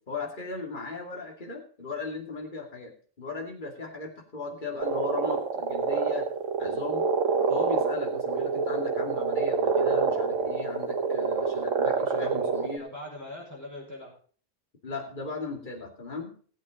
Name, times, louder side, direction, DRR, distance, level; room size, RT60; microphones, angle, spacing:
voice 1, 0.0-6.3 6.6-7.1 7.5-12.9 14.8-16.3, left 3 dB, 40° left, 2 dB, 2.7 m, -37 dB
sound 1, 4.8-12.8, right 5 dB, 75° right, 1.6 m, -27 dB
voice 2, 12.1-14.1, left 1 dB, 10° left, -2 dB, 5.5 m, -42 dB
18.5 x 8.4 x 3.8 m, 0.43 s
omnidirectional pair, 1.3 m